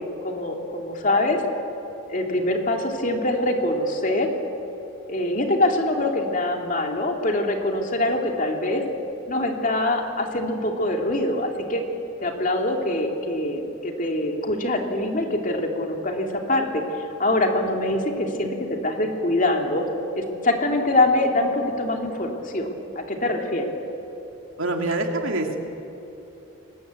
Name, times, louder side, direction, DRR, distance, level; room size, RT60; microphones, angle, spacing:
voice 1, 0.0-1.4 2.1-4.3 5.1-8.8 9.3-11.8 12.2-16.8 17.2-18.6 18.8-19.8 20.2-22.7 23.0-23.7, left 1 dB, 40° left, 2 dB, 2.8 m, -24 dB
voice 2, 24.6-25.6, right 2 dB, 70° right, 3 dB, 2.6 m, -25 dB
28.5 x 21.0 x 8.3 m, 2.9 s
head